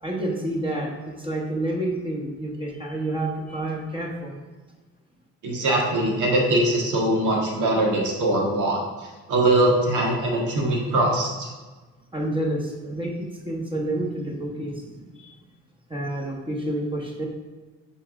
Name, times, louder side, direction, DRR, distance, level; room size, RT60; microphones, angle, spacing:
voice 1, 0.0-4.4 12.1-15.3 15.9-17.2, right 1 dB, 15° right, -1 dB, 1.2 m, -29 dB
voice 2, 5.4-11.5, right 1 dB, 80° right, -2 dB, 1.7 m, -22 dB
5.8 x 3.6 x 6.0 m, 1.3 s
cardioid pair, 90°, 30 cm